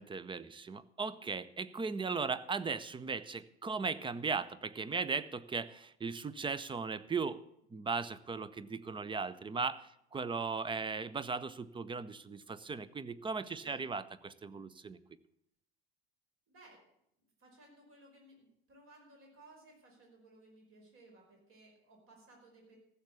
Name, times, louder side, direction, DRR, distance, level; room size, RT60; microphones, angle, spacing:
voice 1, 0.0-7.4 7.7-15.0, right 4 dB, 15° right, 17 dB, 0.6 m, -37 dB
voice 2, 13.5-13.8 16.5-16.8 17.4-22.8, right 2 dB, 40° right, 0 dB, 5.1 m, -60 dB
14.5 x 7.0 x 8.4 m, 0.77 s
figure-of-eight pair, 70°, 33 cm